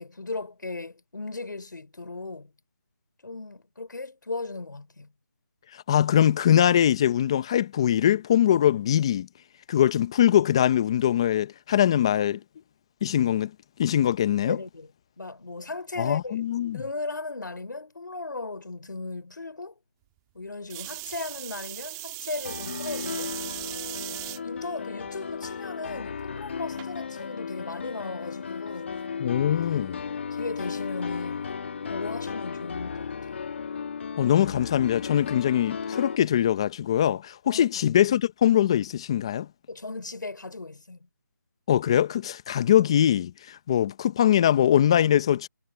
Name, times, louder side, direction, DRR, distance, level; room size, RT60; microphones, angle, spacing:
voice 1, 0.0-2.5 3.2-5.1 14.4-14.9 15.2-16.4 16.7-19.8 20.3-23.4 24.4-28.9 30.3-31.5 31.9-33.1 37.4-37.7 39.7-41.1, left 3 dB, 85° left, 4.6 m, -36 dB
voice 2, 5.7-9.3 9.7-12.4 13.0-13.5 13.8-14.6 16.0-16.8 29.2-30.0 34.2-39.5 41.7-45.5, left 10 dB, 15° left, 0.7 m, -22 dB
sound 1, 20.7-24.4 25.1-25.5 26.8-26.9, right 22 dB, 10° right, 1.6 m, -37 dB
Piano, 22.4-36.2, left 6 dB, 40° left, 2.0 m, -35 dB
figure-of-eight pair, 170°, 10 cm